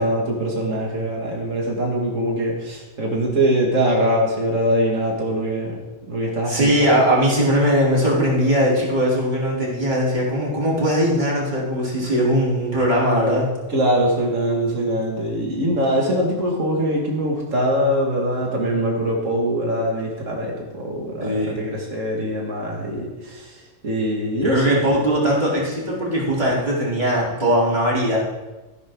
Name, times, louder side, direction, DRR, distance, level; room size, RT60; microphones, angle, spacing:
voice 1, 0.0-5.8 6.1-6.9 13.7-24.9, equal, 90° right, -2 dB, 2.4 m, -23 dB
voice 2, 6.5-13.5 21.2-21.6 24.4-28.2, equal, 35° right, -6 dB, 3.8 m, -20 dB
15.0 x 10.5 x 3.8 m, 1.1 s
omnidirectional pair, 1.3 m